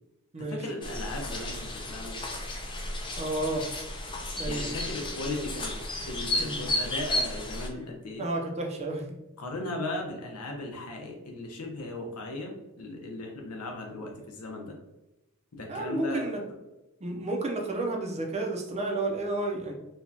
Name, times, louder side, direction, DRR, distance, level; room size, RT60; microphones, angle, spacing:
voice 1, 0.4-2.3 4.4-5.7 6.0-8.2 9.4-14.7 15.5-16.3, left 2 dB, 85° left, 1 dB, 0.8 m, -37 dB
sound 1, 0.8-7.7, left 1 dB, 20° left, 0.4 m, -33 dB
voice 2, 3.2-3.7 4.4-4.6 6.4-6.6 7.8-7.9 8.2-9.1 15.7-16.4 17.0-19.7, right 2 dB, 30° right, 1 dB, 0.6 m, -31 dB
4.3 x 2.3 x 2.8 m, 1.0 s
head